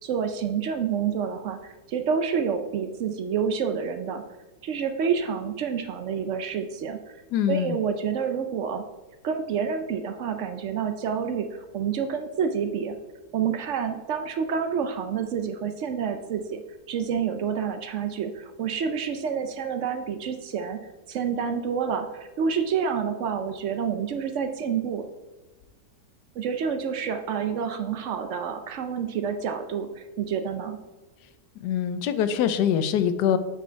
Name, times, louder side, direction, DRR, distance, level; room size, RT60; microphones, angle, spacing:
voice 1, 0.0-4.2 4.6-7.2 7.5-8.8 9.2-13.0 13.3-16.6 16.9-20.8 21.1-25.1 26.4-30.8, right 7 dB, 65° right, 7 dB, 0.7 m, -28 dB
voice 2, 7.3-7.8 31.6-33.4, left 9 dB, 80° left, 11 dB, 1.1 m, -24 dB
8.2 x 4.7 x 4.5 m, 1.1 s
omnidirectional pair, 1.8 m